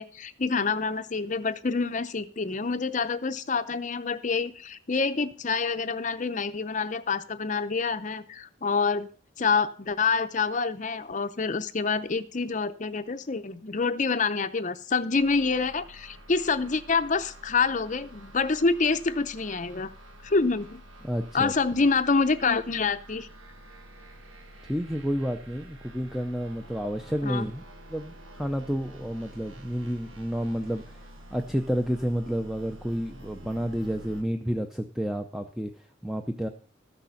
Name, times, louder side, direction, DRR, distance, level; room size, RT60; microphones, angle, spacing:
voice 1, 0.0-9.1 9.4-19.9 20.2-20.8 21.3-23.3 27.2-27.4, left 4 dB, 40° left, 11 dB, 0.6 m, -27 dB
sound 1, 15.2-34.2, right 1 dB, 80° right, 1.5 m, -48 dB
voice 2, 21.0-21.5 24.7-27.6 27.9-36.5, equal, ahead, 5 dB, 0.5 m, -30 dB
14.0 x 6.6 x 5.8 m, 0.41 s
head